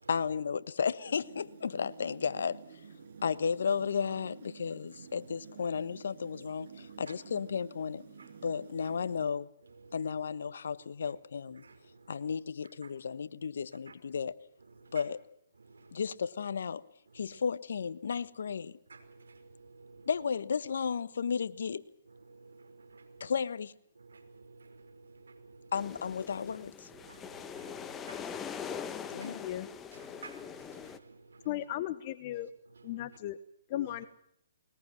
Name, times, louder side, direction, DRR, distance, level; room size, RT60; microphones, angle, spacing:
voice 1, 0.1-2.6 3.2-8.0 8.4-9.5 9.9-11.6 12.1-14.4 14.9-15.2 15.9-16.8 17.1-18.8 20.1-21.8 23.2-23.7 25.7-26.9 29.1-29.5, left 6 dB, 70° left, 1.2 m, -33 dB
sound 1, 1.0-9.3, right 6 dB, 55° right, 6.6 m, -52 dB
voice 2, 3.0-3.4 4.9-5.3 6.3-6.5 6.8-7.2 8.2-8.9 9.6-10.1 11.1-11.2 11.4-12.3 12.6-12.9 13.9-14.2 14.6-15.1 15.5-16.1 17.1-17.4 18.1-18.6 18.9-20.1 22.0-23.4 23.9-25.9 26.8-29.3 29.9-31.7 32.3-33.2 33.7-34.1, right 4 dB, 85° right, 5.1 m, -55 dB
sound 2, 25.7-31.0, left 7 dB, 15° left, 1.3 m, -42 dB
voice 3, 29.2-29.7 31.4-32.5 32.8-33.4 33.7-34.0, left 14 dB, 35° left, 1.0 m, -36 dB
21.5 x 20.5 x 7.5 m
hypercardioid pair, 145°, 0 cm